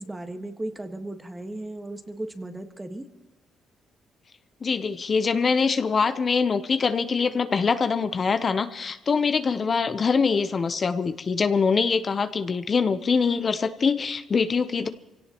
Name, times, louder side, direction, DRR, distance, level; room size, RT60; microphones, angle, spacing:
voice 1, 0.0-3.1, right 1 dB, 15° right, 6 dB, 1.5 m, -36 dB
voice 2, 4.6-14.9, left 5 dB, 40° left, 10 dB, 0.7 m, -24 dB
25.0 x 17.0 x 3.0 m, 1.0 s
cardioid pair, 90°, 0 cm